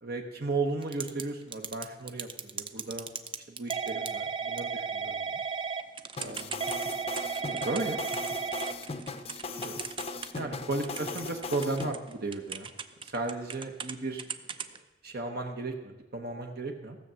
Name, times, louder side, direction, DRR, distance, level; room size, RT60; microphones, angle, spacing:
voice 1, 0.0-3.1 3.5-5.4 6.2-6.6 7.5-8.0 9.5-9.8 10.3-12.7 13.0-14.2 15.0-17.0, right 3 dB, 55° right, 3 dB, 1.1 m, -35 dB
Typing / Telephone, 0.8-1.2 1.5-10.5 10.8-13.9 14.2-14.8, right 6 dB, 30° right, 0.6 m, -35 dB
sound 1, 6.2-11.9, left 3 dB, 35° left, 0.6 m, -38 dB
15.5 x 6.8 x 7.6 m, 1.1 s
head